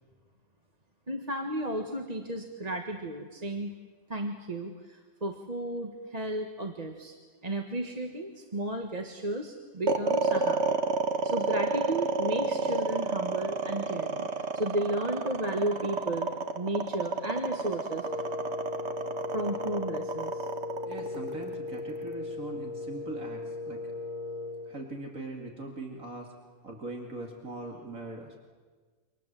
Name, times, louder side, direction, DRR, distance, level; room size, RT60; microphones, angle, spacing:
voice 1, 1.1-3.7 4.1-7.1 7.4-10.8 11.2-16.3 16.5-18.1 19.3-20.5, right 1 dB, 30° right, 3 dB, 1.6 m, -33 dB
sound 1, 9.9-22.1, right 3 dB, 50° right, 1.6 m, -30 dB
Wind instrument woodwind instrument, 18.0-24.8, left 3 dB, 35° left, 1.4 m, -37 dB
voice 2, 20.8-23.9 24.7-26.3 26.6-28.4, right 2 dB, 65° right, 1 dB, 2.8 m, -41 dB
28.5 x 25.5 x 7.6 m, 1.5 s
omnidirectional pair, 1.5 m